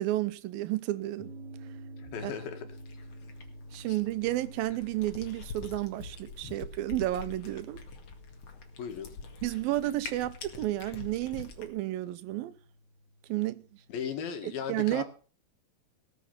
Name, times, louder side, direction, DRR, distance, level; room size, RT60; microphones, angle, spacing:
voice 1, 0.0-1.3 2.2-2.3 3.7-7.8 9.4-12.5 13.3-13.6 14.4-15.0, right 15 dB, 80° right, 2.5 m, -31 dB
sound 1, 1.2-14.1, right 1 dB, 35° right, 3.8 m, -50 dB
voice 2, 2.0-2.7 3.9-4.0 6.4-6.5 8.8-9.2 13.9-15.0, left 7 dB, 75° left, 3.8 m, -37 dB
Cat, 2.7-11.7, left 5 dB, 50° left, 2.7 m, -46 dB
19.0 x 7.0 x 7.1 m
omnidirectional pair, 4.2 m